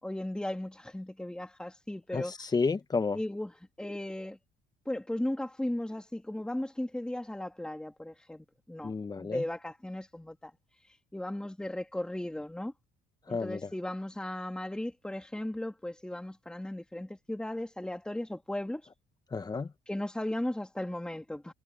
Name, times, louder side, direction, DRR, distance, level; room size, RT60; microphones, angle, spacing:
voice 1, 0.0-2.3 3.1-4.4 4.9-10.5 11.1-12.7 13.3-18.8 19.9-21.5, left 1 dB, 5° left, 2.2 m, -36 dB
voice 2, 2.1-3.2 8.8-9.4 13.3-13.7 19.3-19.7, left 4 dB, 25° left, 1.2 m, -31 dB
cardioid pair, 110°, 17 cm